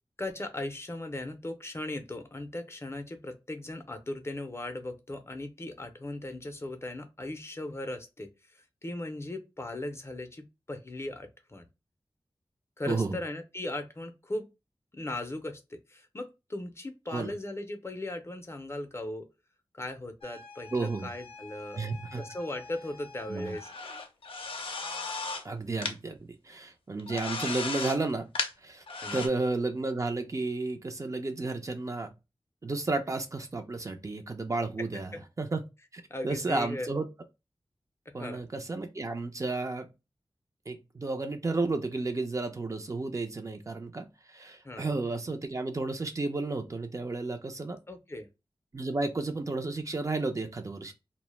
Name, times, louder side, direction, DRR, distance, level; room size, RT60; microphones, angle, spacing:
voice 1, 0.2-11.6 12.8-14.5 14.9-19.3 19.7-21.9 22.1-23.7 29.0-29.3 34.8-35.2 36.1-36.9 38.2-38.4 44.6-44.9 47.9-48.3, left 1 dB, 30° left, 0.5 m, -38 dB
voice 2, 12.9-13.2 17.1-17.3 20.7-21.1 21.8-22.2 23.3-23.6 25.4-28.3 28.6-28.8 29.1-32.1 32.6-35.6 35.9-37.1 38.1-39.9 40.7-47.8 48.7-50.9, right 3 dB, 35° right, 0.4 m, -32 dB
sound 1, 20.2-25.4 25.8-25.9 27.0-28.5 28.9-29.3, left 4 dB, 80° left, 0.4 m, -38 dB
2.0 x 2.0 x 3.0 m
cardioid pair, 50°, 9 cm